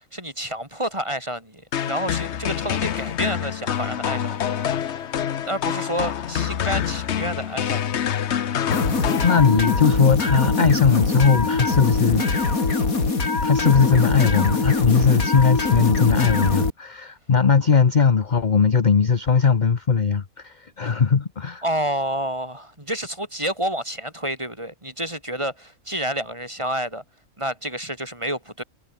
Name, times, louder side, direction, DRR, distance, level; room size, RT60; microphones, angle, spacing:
voice 1, 0.1-4.8 5.4-8.0 21.6-27.0 27.4-28.6, right 1 dB, 20° right, 7.2 m, -29 dB
sound 1, 1.7-9.9, left 9 dB, 55° left, 1.1 m, -26 dB
sound 2, 8.7-16.7, left 3 dB, 80° left, 3.6 m, -22 dB
voice 2, 9.2-12.5 13.4-21.6, left 5 dB, 35° left, 1.0 m, -19 dB
omnidirectional pair, 1.5 m